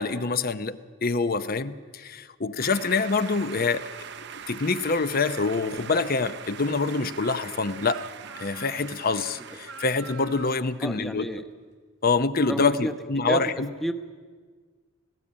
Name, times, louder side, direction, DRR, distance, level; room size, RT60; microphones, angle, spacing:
voice 1, 0.0-3.8 4.3-8.0 8.4-11.3 12.0-13.7, left 4 dB, 45° left, 12 dB, 0.7 m, -26 dB
sound 1, 2.6-10.9, right 7 dB, 55° right, 0.7 m, -42 dB
Speech, 5.1-10.6, right 6 dB, 80° right, 0.9 m, -46 dB
voice 2, 10.8-11.4 12.4-12.9 13.3-13.4 13.8-13.9, equal, ahead, 7 dB, 1.0 m, -30 dB
18.5 x 17.0 x 8.7 m, 1.5 s
head